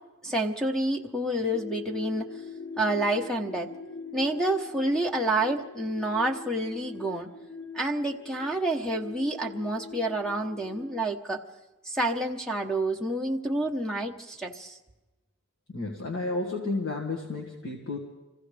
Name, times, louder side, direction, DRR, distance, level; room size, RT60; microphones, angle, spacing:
voice 1, 0.2-2.3 2.8-3.7 4.1-7.3 7.7-11.4 11.9-14.8, right 1 dB, 5° left, 4 dB, 0.9 m, -28 dB
sound 1, 1.5-11.1, left 4 dB, 55° left, 2.6 m, -42 dB
voice 2, 15.7-18.0, left 3 dB, 75° left, -1 dB, 1.7 m, -32 dB
26.5 x 15.5 x 3.4 m, 1.1 s
head